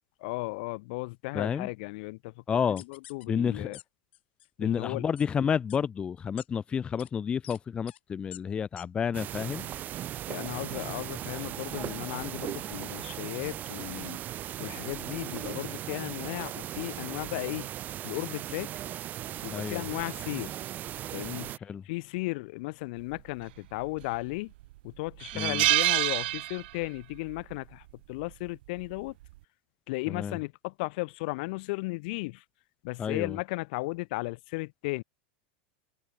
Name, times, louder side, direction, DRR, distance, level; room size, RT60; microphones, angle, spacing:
voice 1, 0.2-2.4 2.8-3.8 4.6-5.0 10.3-14.2 14.6-17.7 18.0-18.7 19.4-20.6 21.1-21.6 21.8-24.5 24.8-29.2 29.9-32.4 32.8-35.0, left 25 dB, 60° left, 1.5 m, -35 dB
voice 2, 1.3-1.7 2.5-2.8 3.3-3.8 4.6-9.7 19.5-19.9 21.6-21.8 25.3-25.6 30.1-30.4 33.0-33.4, left 7 dB, 20° left, 0.9 m, -30 dB
sound 1, 2.8-3.2 3.7-3.8 4.1-4.5 5.2-5.3 5.7-5.8 6.4-6.5 7.0-7.1 7.4-7.6 7.9-8.0 8.3-8.4 8.8-8.9 9.3-9.4, left 14 dB, 80° left, 4.3 m, -47 dB
sound 2, 9.1-21.6, right 12 dB, 30° right, 3.6 m, -38 dB
sound 3, 23.8-24.3 24.7-24.8 25.2-27.0 27.3-27.5 28.8-29.1, right 18 dB, 65° right, 1.2 m, -27 dB
supercardioid pair, 145°, 6 cm